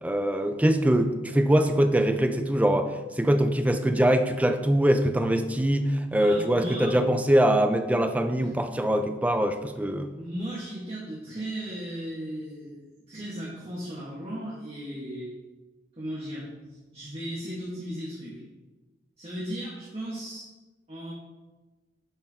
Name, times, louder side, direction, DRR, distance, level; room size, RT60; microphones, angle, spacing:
voice 1, 0.0-2.9 3.2-10.1, right 1 dB, 10° right, 7 dB, 0.4 m, -23 dB
voice 2, 6.2-7.0 8.4-8.5 10.1-12.8 13.1-15.3 16.0-16.5 16.9-18.4 19.2-20.5 20.9-21.1, right 1 dB, 35° right, -7 dB, 1.6 m, -36 dB
10.5 x 4.5 x 3.6 m, 1.2 s
head